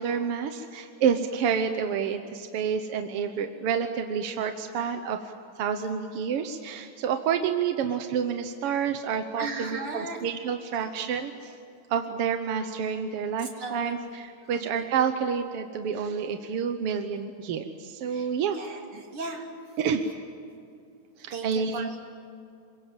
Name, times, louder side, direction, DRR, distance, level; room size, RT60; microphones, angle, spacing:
voice 1, 0.0-11.5 11.9-18.6 19.8-20.0 21.2-21.9, right 7 dB, 60° right, 6 dB, 1.7 m, -29 dB
voice 2, 9.4-10.2 10.7-10.9 11.3-11.4 13.4-14.1 14.5-14.8 18.1-19.5 21.3-22.0, right 3 dB, 45° right, 1 dB, 4.1 m, -37 dB
28.0 x 24.5 x 7.8 m, 2.5 s
omnidirectional pair, 3.5 m